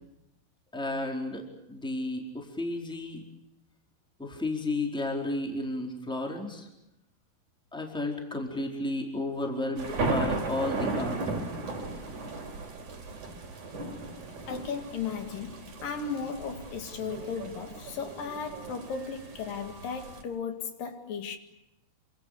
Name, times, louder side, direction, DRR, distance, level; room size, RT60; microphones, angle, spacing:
voice 1, 0.7-3.3 4.2-6.7 7.7-11.4, left 2 dB, ahead, 3.9 m, -33 dB
sound 1, 9.8-20.2, right 3 dB, 50° right, 5.0 m, -36 dB
voice 2, 14.5-21.4, left 5 dB, 60° left, 3.5 m, -36 dB
27.5 x 26.0 x 6.9 m
omnidirectional pair, 4.7 m